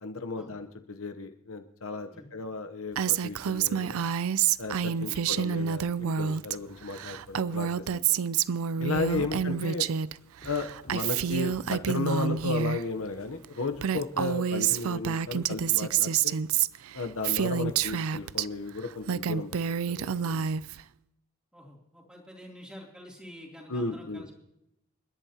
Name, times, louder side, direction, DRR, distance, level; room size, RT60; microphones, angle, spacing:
voice 1, 0.0-4.0 4.6-8.0 8.8-9.9 10.4-16.4 16.9-19.6 19.9-20.5 23.7-24.2, left 3 dB, 65° left, 7 dB, 0.9 m, -34 dB
Female speech woman speaking, 3.0-6.6 6.8-10.1 10.4-12.8 13.4-13.5 13.8-18.5 18.9-20.8, right 8 dB, 70° right, 0.4 m, -28 dB
sound 1, 8.7-10.0 10.4-11.8 12.3-12.6 13.2-13.3, equal, 40° left, 3.5 m, -51 dB
voice 2, 21.5-24.3, equal, 5° right, -1 dB, 2.9 m, -48 dB
29.0 x 10.5 x 2.9 m, 0.84 s
head